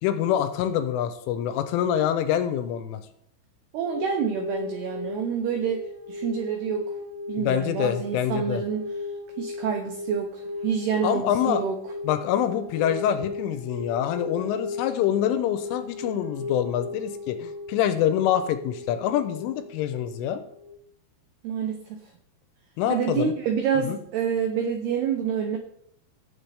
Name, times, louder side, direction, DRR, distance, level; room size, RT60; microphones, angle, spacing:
voice 1, 0.0-3.0 7.4-8.6 11.0-11.6 12.0-20.4 22.8-23.3 23.8-24.0, left 10 dB, 85° left, 9 dB, 3.1 m, -26 dB
voice 2, 3.7-6.9 7.3-8.9 9.4-11.8 21.4-22.0 22.9-25.6, right 7 dB, 85° right, 4 dB, 2.3 m, -27 dB
sound 1, 3.8-20.7, left 3 dB, 25° right, 2.4 m, -36 dB
17.0 x 7.6 x 3.5 m, 0.73 s
omnidirectional pair, 6.0 m